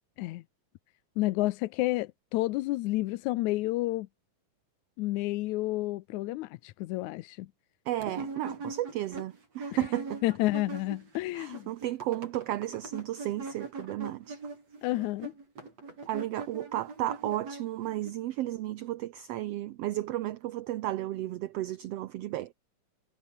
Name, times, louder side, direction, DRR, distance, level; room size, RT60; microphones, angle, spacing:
voice 1, 1.2-4.1 5.0-7.5 9.7-9.8 10.2-11.7 14.8-15.3, left 18 dB, 75° left, 2.0 m, -30 dB
voice 2, 7.9-10.2 11.3-14.4 16.1-22.5, right 14 dB, 75° right, 1.4 m, -33 dB
sound 1, 8.0-11.2 11.4-18.1, right 3 dB, 50° right, 7.8 m, -42 dB
omnidirectional pair, 3.6 m